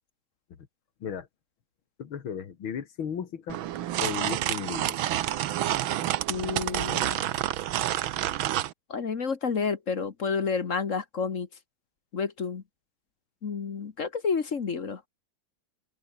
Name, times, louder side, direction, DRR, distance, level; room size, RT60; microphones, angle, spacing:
voice 1, 2.0-3.6 4.0-5.0, left 7 dB, 85° left, 2.7 m, -35 dB
sound 1, 3.5-8.7, right 13 dB, 80° right, 1.7 m, -29 dB
voice 2, 6.3-7.2 8.9-11.5 12.1-12.6 13.4-15.0, left 5 dB, 40° left, 1.6 m, -30 dB
open air
omnidirectional pair, 2.2 m